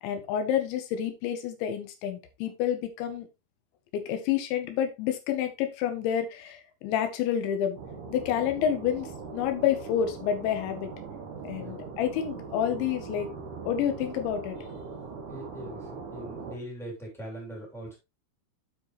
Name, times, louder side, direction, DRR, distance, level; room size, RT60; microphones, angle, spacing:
voice 1, 0.0-3.3 3.9-7.8 8.1-10.9 11.4-13.3 13.7-14.6, left 9 dB, 75° left, 7 dB, 3.3 m, -29 dB
sound 1, 7.8-16.6, right 4 dB, 85° right, 1.8 m, -41 dB
voice 2, 15.3-17.9, right 1 dB, ahead, -2 dB, 1.7 m, -41 dB
12.5 x 4.5 x 3.1 m, 0.25 s
omnidirectional pair, 5.8 m